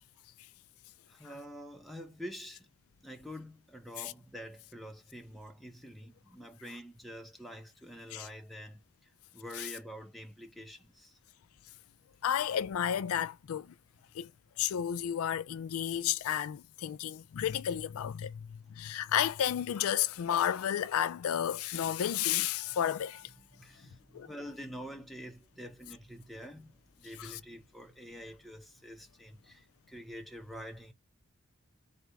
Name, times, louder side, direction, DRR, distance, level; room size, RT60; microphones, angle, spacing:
voice 1, 1.1-2.7 3.0-11.2 23.4-30.9, equal, ahead, 0.8 m, -47 dB
voice 2, 12.2-13.7 14.1-14.3 14.6-23.3 24.1-24.3 27.2-27.4, left 10 dB, 80° left, 0.3 m, -32 dB
4.1 x 2.4 x 4.6 m
head